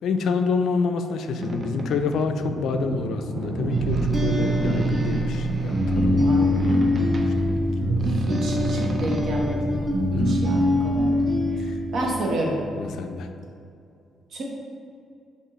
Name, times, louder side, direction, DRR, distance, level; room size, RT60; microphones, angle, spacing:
voice 1, 0.0-6.2 6.6-7.3 10.1-10.4 11.6-11.8 12.8-13.3, left 5 dB, 75° left, 7 dB, 0.3 m, -27 dB
Boat Water vehicle, 1.4-9.2, right 2 dB, 40° right, 0.4 m, -33 dB
sound 1, 3.6-12.4, equal, 25° right, 0.8 m, -23 dB
voice 2, 6.1-6.5 7.9-9.7 10.3-11.2 11.5-11.6 11.9-12.6 14.3-14.4, right 1 dB, 65° right, -2 dB, 0.9 m, -30 dB
6.0 x 2.5 x 3.0 m, 2.4 s
cardioid pair, 90°, 0 cm